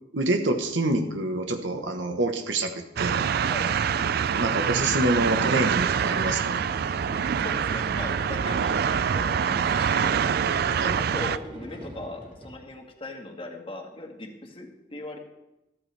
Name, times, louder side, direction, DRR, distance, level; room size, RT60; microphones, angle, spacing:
voice 1, 0.1-2.7 3.0-3.2 4.3-6.6 10.8-11.0, right 2 dB, 85° right, 5 dB, 1.3 m, -26 dB
sound 1, 3.0-11.4, right 7 dB, 55° right, 0.4 m, -25 dB
sound 2, 3.5-12.6, equal, 30° right, 2.9 m, -42 dB
voice 2, 7.4-10.2 10.9-15.2, left 2 dB, 30° left, 3 dB, 1.7 m, -39 dB
14.0 x 13.5 x 3.4 m, 0.94 s
head